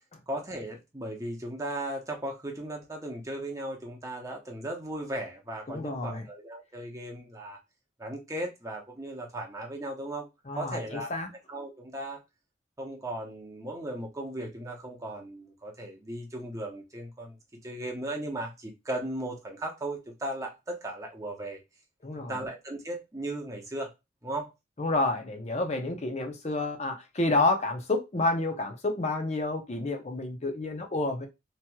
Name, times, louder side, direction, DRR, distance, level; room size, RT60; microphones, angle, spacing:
voice 1, 0.3-7.6 8.0-10.3 10.6-11.1 11.5-12.2 12.8-17.4 17.6-21.6 22.2-23.9 24.2-24.5, right 1 dB, 15° right, 0.7 m, -37 dB
voice 2, 5.7-6.3 10.5-11.3 22.0-22.4 24.8-31.3, left 2 dB, 35° left, 0.6 m, -29 dB
3.0 x 2.9 x 2.2 m
head